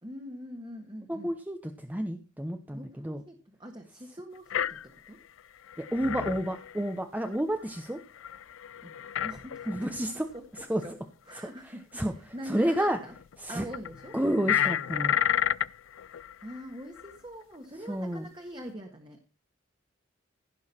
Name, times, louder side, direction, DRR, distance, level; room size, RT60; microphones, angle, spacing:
voice 1, 0.0-1.3 2.7-5.2 8.8-9.7 10.1-10.9 11.2-13.1 13.5-14.2 16.4-19.2, equal, 25° right, 3 dB, 1.7 m, -44 dB
voice 2, 1.1-3.2 5.8-8.0 9.7-10.3 10.7-10.8 11.9-12.1 12.5-13.0 13.4-13.6 14.1-15.2 17.9-18.2, right 1 dB, 10° right, 6 dB, 0.9 m, -30 dB
sound 1, 4.5-5.1 5.4-5.5 5.7-7.4 7.8-7.9 8.2-10.1 10.4-10.9 11.3-11.4 12.4-13.4 13.7-16.6 17.0-17.2 18.1-18.2, left 10 dB, 90° left, 0.4 m, -31 dB
16.5 x 6.5 x 4.4 m, 0.37 s
head